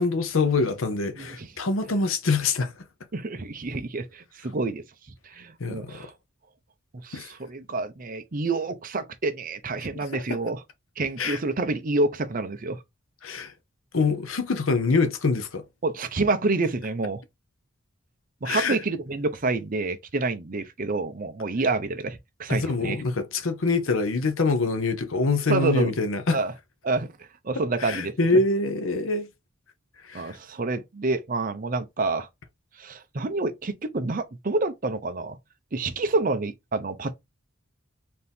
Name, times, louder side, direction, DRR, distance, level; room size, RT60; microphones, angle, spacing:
voice 1, 0.0-2.7 5.6-6.1 7.1-7.3 9.9-10.2 11.2-11.4 13.2-13.5 13.9-15.6 18.4-18.8 22.5-26.4 27.8-29.3 30.0-30.4, left 3 dB, 70° left, 0.8 m, -25 dB
voice 2, 1.2-1.5 3.1-4.8 5.2-6.1 7.0-10.6 11.0-12.8 15.8-17.2 18.4-23.0 25.5-25.9 26.3-26.5 26.8-27.1 27.4-28.1 30.1-32.3 32.8-35.4 35.7-37.1, right 3 dB, 40° right, 0.7 m, -28 dB
4.3 x 2.7 x 3.6 m
head